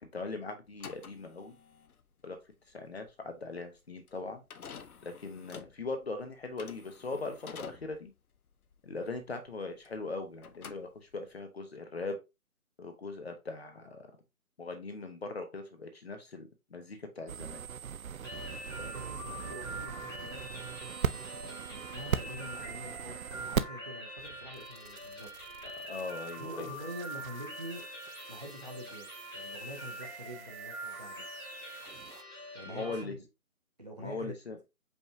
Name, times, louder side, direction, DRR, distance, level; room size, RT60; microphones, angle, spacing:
voice 1, 0.0-1.6 2.2-2.4 2.7-4.4 5.0-8.1 8.8-12.2 12.8-14.1 14.6-17.6 25.9-26.7 32.6-33.2 34.0-34.6, left 3 dB, 45° left, 0.9 m, -40 dB
sound 1, 0.7-10.1 10.4-11.4, left 6 dB, 80° left, 0.6 m, -50 dB
sound 2, 17.3-23.9 24.2-32.2, right 7 dB, 70° right, 0.5 m, -40 dB
sound 3, 18.2-33.0, right 1 dB, 15° left, 1.0 m, -44 dB
voice 2, 18.7-20.5 21.4-25.3 26.4-27.8 28.3-31.2 32.5-33.2 33.8-34.3, equal, 30° right, 0.6 m, -46 dB
5.3 x 3.1 x 2.6 m
figure-of-eight pair, 155°, 43 cm